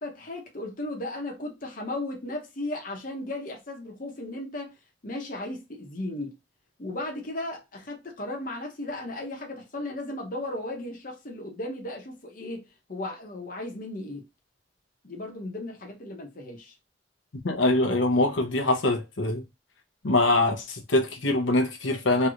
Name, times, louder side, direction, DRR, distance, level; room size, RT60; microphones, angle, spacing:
voice 1, 0.0-4.8 5.0-6.4 6.8-14.3 15.0-16.7, left 1 dB, 50° left, 0.9 m, -35 dB
voice 2, 17.4-19.4 20.0-22.3, left 2 dB, 90° left, 0.8 m, -23 dB
3.2 x 2.9 x 2.5 m
head